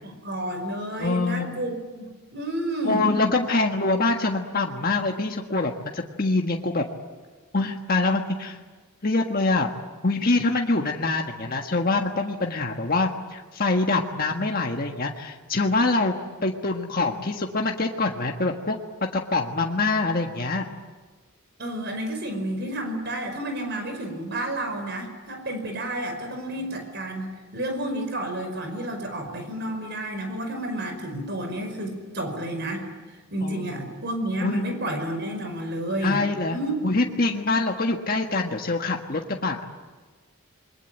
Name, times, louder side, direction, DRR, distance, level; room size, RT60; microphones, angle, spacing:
voice 1, 0.0-3.0 21.6-32.9 33.3-36.2 36.5-36.8, right 1 dB, 50° right, 5 dB, 5.1 m, -30 dB
voice 2, 1.0-1.5 2.8-6.8 7.5-8.6 9.0-9.7 10.0-16.1 16.4-18.8 19.1-20.7 26.5-26.6 33.4-33.9 34.4-34.7 36.0-36.6 36.8-39.7, left 3 dB, 40° left, 2 dB, 1.5 m, -25 dB
28.0 x 22.5 x 9.1 m, 1.3 s
head